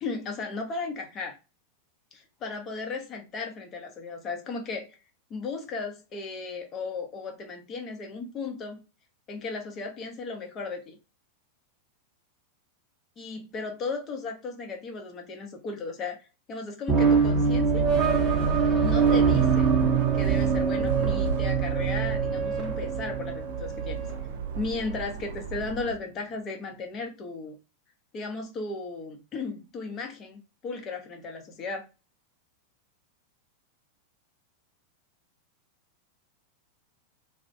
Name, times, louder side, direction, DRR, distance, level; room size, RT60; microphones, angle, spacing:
voice 1, 0.0-1.4 2.1-5.0 5.3-8.8 9.3-11.0 13.2-17.9 18.8-19.7 20.1-24.0 24.6-27.6 28.1-31.9, left 4 dB, 30° left, 0.6 m, -35 dB
sound 1, 16.9-24.2, right 5 dB, 20° right, 0.7 m, -24 dB
sound 2, 17.0-25.9, right 6 dB, 60° right, 0.4 m, -32 dB
2.4 x 2.0 x 2.6 m
figure-of-eight pair, 90°, 0 cm